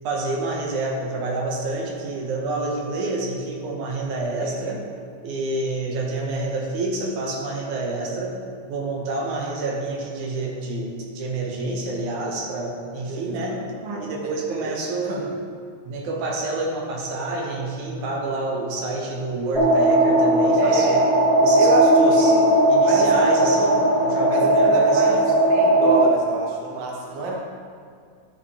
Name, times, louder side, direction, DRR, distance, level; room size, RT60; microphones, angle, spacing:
voice 1, 0.0-4.8 5.2-8.4 8.7-15.2 15.9-21.0 21.4-22.4 22.7-23.7 24.0-25.3, right 2 dB, 85° right, 0 dB, 2.6 m, -28 dB
voice 2, 4.4-4.8 13.1-13.6 14.6-14.7 15.0-15.3 20.6-21.1 21.6-22.4 22.9-23.1 23.4-23.9 24.3-25.2 25.5-27.4, right 3 dB, 50° right, -2 dB, 1.5 m, -29 dB
sound 1, 19.5-26.1, right 1 dB, 20° left, 1.0 m, -17 dB
12.0 x 6.1 x 4.2 m, 2.2 s
omnidirectional pair, 3.4 m